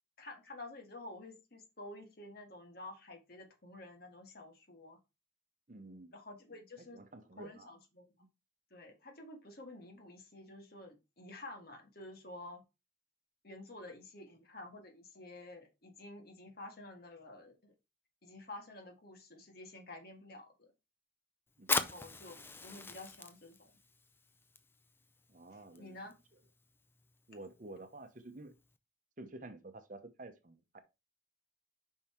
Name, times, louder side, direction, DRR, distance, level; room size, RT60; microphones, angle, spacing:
voice 1, 0.2-5.0 6.1-8.1 8.7-12.6 13.4-17.7 18.2-20.7 21.7-23.7 25.5-26.1, left 2 dB, 50° left, 1.8 m, -50 dB
voice 2, 5.7-6.1 6.9-7.7 8.2-8.3 21.6-21.9 25.3-26.0 27.3-28.5 29.2-30.8, right 2 dB, 40° right, 0.9 m, -50 dB
Fire, 21.5-28.8, left 3 dB, 10° left, 0.5 m, -42 dB
5.5 x 5.5 x 4.4 m
head